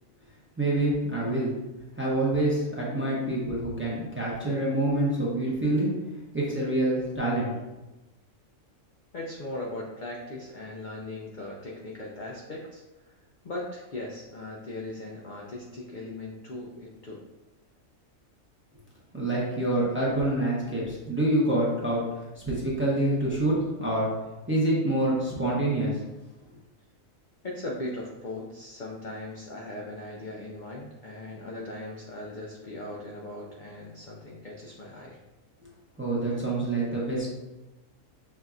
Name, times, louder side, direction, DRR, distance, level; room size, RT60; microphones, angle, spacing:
voice 1, 0.6-1.5 2.0-5.9 6.3-7.5 19.1-22.0 22.4-24.1 24.5-26.0 36.0-37.3, right 1 dB, 10° right, -6 dB, 0.6 m, -26 dB
voice 2, 9.1-13.1 13.4-17.2 27.4-35.2, left 2 dB, 60° left, -3 dB, 0.5 m, -39 dB
5.9 x 2.7 x 2.4 m, 1.1 s
omnidirectional pair, 1.4 m